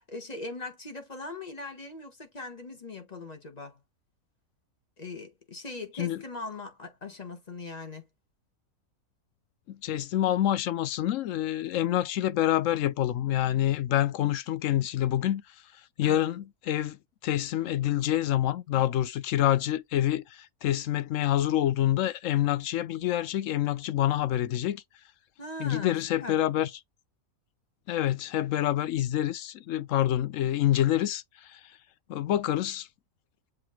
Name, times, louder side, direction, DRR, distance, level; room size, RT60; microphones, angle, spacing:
voice 1, 0.0-3.8 5.0-8.1 16.0-16.2 25.4-26.4, left 3 dB, 30° left, 1.4 m, -40 dB
voice 2, 9.7-15.4 16.0-24.8 25.6-26.7 27.9-31.6 32.1-32.9, left 12 dB, 70° left, 0.9 m, -27 dB
7.7 x 2.9 x 2.3 m
omnidirectional pair, 1.5 m